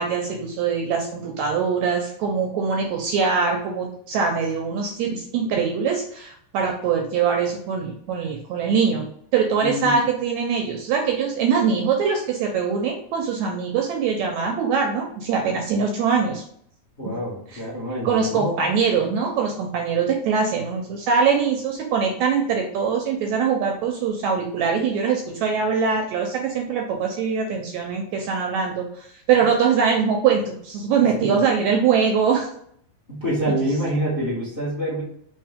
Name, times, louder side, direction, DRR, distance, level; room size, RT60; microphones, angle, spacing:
voice 1, 0.0-9.1 9.3-16.4 17.5-17.6 18.0-32.5, right 6 dB, 75° right, 2 dB, 1.7 m, -22 dB
voice 2, 9.6-10.0 17.0-18.7 31.2-31.4 33.1-35.0, equal, 30° left, -6 dB, 0.9 m, -26 dB
4.5 x 3.4 x 3.4 m, 0.65 s
omnidirectional pair, 3.7 m